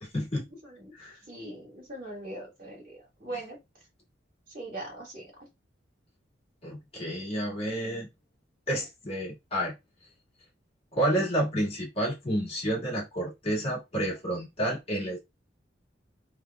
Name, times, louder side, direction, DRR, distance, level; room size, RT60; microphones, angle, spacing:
voice 1, 0.0-0.5 1.0-1.1 6.6-8.1 8.7-9.7 10.9-15.2, right 1 dB, 30° left, 1.7 m, -30 dB
voice 2, 0.6-0.9 1.3-3.6 4.5-5.3, right 1 dB, 50° right, 2.3 m, -41 dB
3.5 x 3.3 x 2.3 m
head